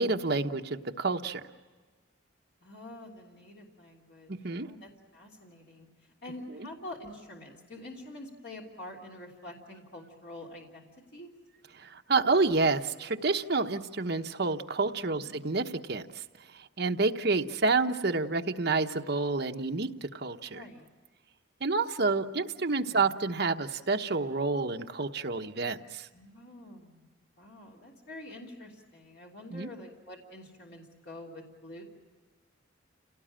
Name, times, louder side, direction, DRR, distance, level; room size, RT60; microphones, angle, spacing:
voice 1, 0.0-1.5 4.4-4.7 11.8-16.1 16.8-20.6 21.6-26.1 29.5-29.7, right 3 dB, 50° right, 5 dB, 1.0 m, -29 dB
voice 2, 2.6-4.3 4.6-5.9 6.2-11.3 14.8-15.3 20.5-20.9 22.6-23.1 26.1-27.1 27.4-31.8, left 1 dB, 55° left, -1 dB, 3.2 m, -47 dB
29.0 x 18.0 x 8.9 m, 1.4 s
head